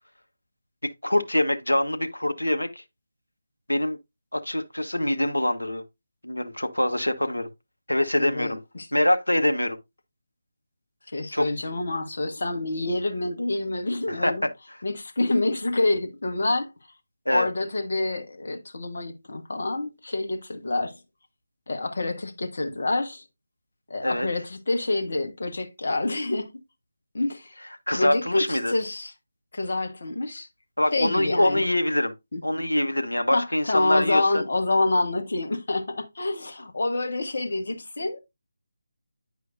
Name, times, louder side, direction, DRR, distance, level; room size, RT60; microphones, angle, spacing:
voice 1, 1.0-2.8 3.7-4.0 4.3-5.8 6.2-7.5 7.9-8.6 8.9-9.8 11.3-11.5 14.1-14.3 17.3-17.5 24.0-24.3 27.9-28.7 30.8-32.1 32.4-34.4, left 1 dB, 80° left, 0.8 m, -24 dB
voice 2, 8.2-8.9 11.1-14.5 14.8-16.7 17.3-20.9 21.7-23.2 23.9-26.5 27.1-27.6 27.9-29.1 29.5-30.5 30.9-31.6 32.3-32.4 33.3-38.2, left 2 dB, 50° left, 1.2 m, -27 dB
9.2 x 4.9 x 2.5 m
figure-of-eight pair, 155°, 0 cm